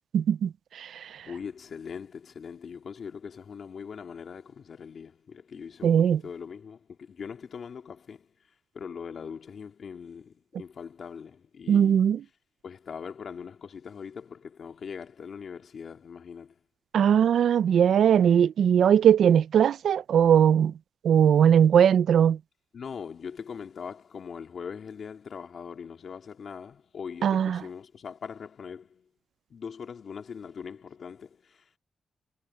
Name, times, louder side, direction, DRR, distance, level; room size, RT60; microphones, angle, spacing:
voice 1, 0.1-0.5 0.8-1.1 5.8-6.2 11.7-12.2 16.9-20.7 21.0-22.4 27.2-27.6, right 8 dB, 80° right, 0.4 m, -20 dB
voice 2, 1.3-8.3 8.7-12.0 12.6-16.5 22.7-29.0 29.5-31.8, left 6 dB, 65° left, 2.7 m, -41 dB
cardioid pair, 70°, 0 cm